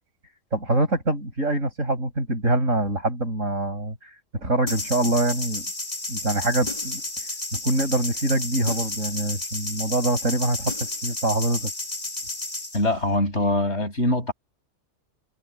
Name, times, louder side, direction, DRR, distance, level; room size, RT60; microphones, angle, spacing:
voice 1, 0.5-4.0 4.3-5.6 6.1-7.0 7.5-10.7 11.0-11.7, right 1 dB, 75° right, 8.5 m, -24 dB
sound 1, 4.7-12.8, left 2 dB, 30° left, 2.6 m, -32 dB
voice 2, 12.7-14.3, left 1 dB, 55° left, 8.4 m, -23 dB
omnidirectional pair, 1.3 m